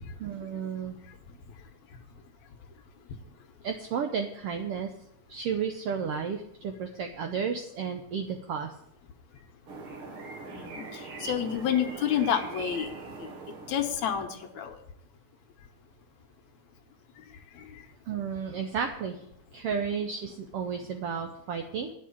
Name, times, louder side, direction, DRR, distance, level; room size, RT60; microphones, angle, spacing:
voice 1, 0.2-1.0 3.6-4.9 5.3-8.7 18.1-19.2 19.5-21.9, right 6 dB, 75° right, 4 dB, 1.5 m, -32 dB
sound 1, 9.7-14.5, right 3 dB, 50° right, 2.4 m, -42 dB
voice 2, 10.5-12.9 13.2-13.3 13.7-14.8 17.6-17.7, left 9 dB, 75° left, 5 dB, 2.3 m, -29 dB
10.5 x 6.1 x 8.4 m, 0.77 s
omnidirectional pair, 3.5 m